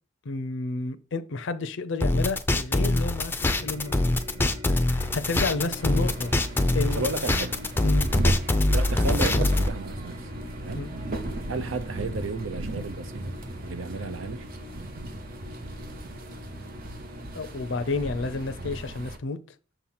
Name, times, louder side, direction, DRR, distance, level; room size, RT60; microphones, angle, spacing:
voice 1, 0.3-4.0 4.6-6.3 6.7-7.0 7.8-8.1 10.8-10.9 17.3-19.4, left 3 dB, 65° left, 0.5 m, -31 dB
sound 1, 2.0-9.7, left 2 dB, 10° left, 0.4 m, -24 dB
sound 2, 3.4-18.8, left 1 dB, 30° right, 1.0 m, -43 dB
sound 3, 5.8-19.2, right 1 dB, 45° right, 0.7 m, -36 dB
voice 2, 7.0-7.6 8.2-8.4 8.7-10.3 10.6-10.9 11.5-13.4 13.6-14.5, right 3 dB, 75° right, 0.6 m, -33 dB
6.8 x 3.0 x 5.6 m
head